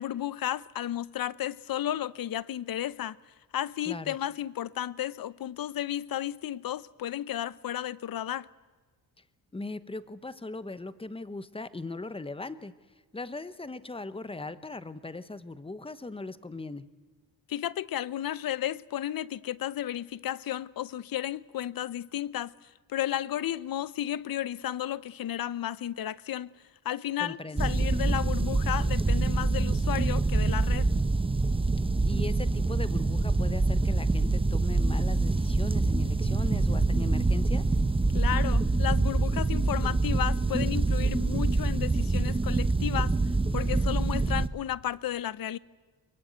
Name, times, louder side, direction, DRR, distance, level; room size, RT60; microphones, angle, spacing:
voice 1, 0.0-3.2 3.5-8.5 17.5-26.5 26.8-30.9 38.1-43.1 43.5-45.6, left 12 dB, 60° left, 0.8 m, -33 dB
voice 2, 9.5-12.7 13.1-16.9 27.2-27.7 32.0-37.7, left 3 dB, 15° left, 1.0 m, -39 dB
sound 1, 27.6-44.5, right 3 dB, 15° right, 0.9 m, -25 dB
23.0 x 22.5 x 9.3 m
cardioid pair, 135°, 40 cm